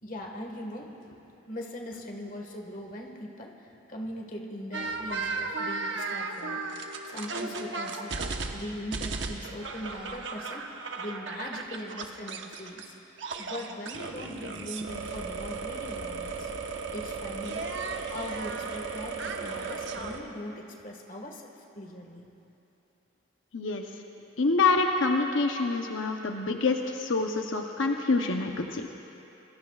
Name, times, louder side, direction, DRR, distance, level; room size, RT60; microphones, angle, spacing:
voice 1, 0.0-1.2 1.5-8.1 8.5-10.7 10.9-12.9 13.4-16.5 16.9-17.7 18.1-22.3 25.5-25.8, equal, 45° left, 1 dB, 1.6 m, -40 dB
sound 1, 4.7-12.9 13.2-20.2, right 4 dB, 75° right, 1.1 m, -35 dB
voice 2, 23.5-23.8 24.4-28.9, left 3 dB, 85° left, 3 dB, 0.8 m, -26 dB
26.5 x 21.5 x 2.4 m, 3.0 s
head